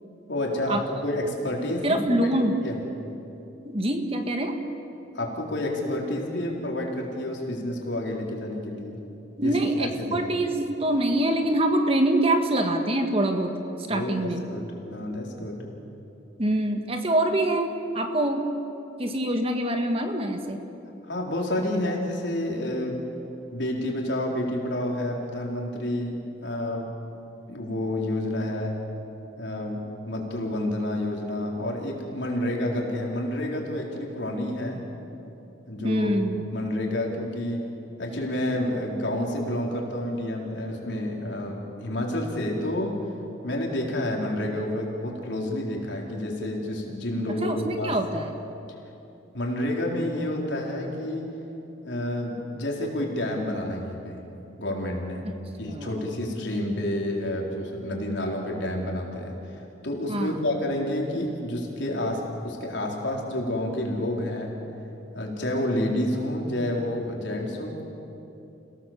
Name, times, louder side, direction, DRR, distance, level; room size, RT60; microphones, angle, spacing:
voice 1, 0.3-2.3 2.6-2.8 5.1-9.0 9.4-9.5 9.8-10.2 13.9-15.7 21.0-23.1 23.5-27.0 27.5-28.8 29.4-34.8 35.7-36.1 36.5-37.7 38.0-43.1 43.4-47.9 49.3-51.3 51.8-54.2 54.6-55.3 55.6-64.5 65.1-67.8, left 1 dB, 70° left, -1 dB, 4.0 m, -29 dB
voice 2, 1.8-2.6 3.6-4.5 9.4-13.5 13.9-14.4 16.4-18.4 19.0-20.6 35.8-36.4 47.4-48.3 55.6-55.9 60.1-60.4, right 1 dB, 30° right, 5 dB, 1.6 m, -25 dB
28.5 x 17.5 x 7.4 m, 2.9 s
head